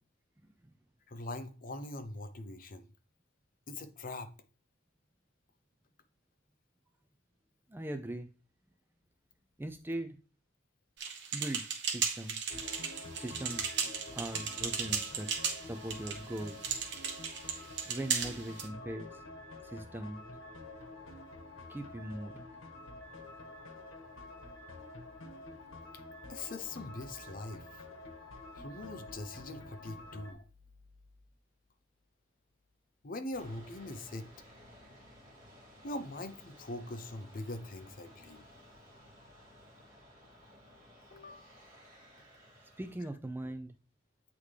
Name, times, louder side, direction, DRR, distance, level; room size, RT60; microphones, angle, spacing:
voice 1, 1.1-2.9 3.7-4.3 18.8-19.1 26.3-27.8 28.6-30.4 33.0-34.3 35.8-38.5 41.1-41.5, left 2 dB, 40° left, 0.6 m, -42 dB
voice 2, 7.7-8.3 9.6-10.2 11.3-12.5 13.1-15.3 15.6-16.7 17.9-19.2 19.6-20.2 21.7-22.4 42.8-43.8, right 1 dB, 10° right, 0.3 m, -40 dB
sound 1, 11.0-18.7, right 6 dB, 55° right, 1.2 m, -36 dB
sound 2, 12.5-30.3, left 2 dB, 85° left, 1.4 m, -49 dB
sound 3, 33.3-42.9, equal, 40° right, 1.9 m, -57 dB
8.2 x 3.6 x 3.3 m
head